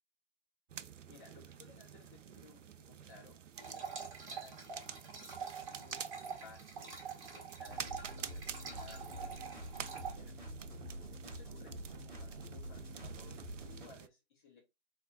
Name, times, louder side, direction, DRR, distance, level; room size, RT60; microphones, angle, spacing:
sound 1, 0.7-14.1, right 8 dB, 85° right, 0.5 m, -49 dB
voice 1, 1.1-6.0 6.4-10.3 11.2-14.6, left 5 dB, 40° left, 2.6 m, -60 dB
sound 2, 3.6-10.1, right 6 dB, 30° right, 1.1 m, -46 dB
sound 3, 7.7-13.9, equal, 10° right, 1.2 m, -47 dB
4.2 x 3.4 x 2.9 m
figure-of-eight pair, 150°, 36 cm